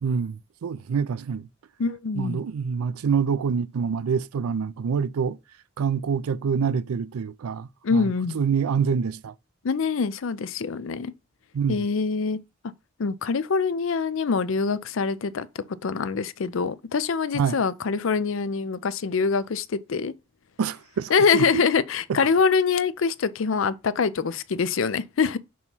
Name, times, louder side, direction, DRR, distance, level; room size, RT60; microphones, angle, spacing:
voice 1, 0.0-1.5 2.1-5.4 5.8-9.3 11.5-11.9 17.3-17.6 20.6-21.6 22.1-22.2, right 6 dB, 85° right, 0.4 m, -26 dB
voice 2, 1.8-2.4 7.8-8.4 9.6-11.1 11.7-12.4 13.0-15.5 15.8-20.1 21.1-25.4, left 5 dB, 65° left, 0.5 m, -24 dB
6.1 x 3.0 x 5.4 m
head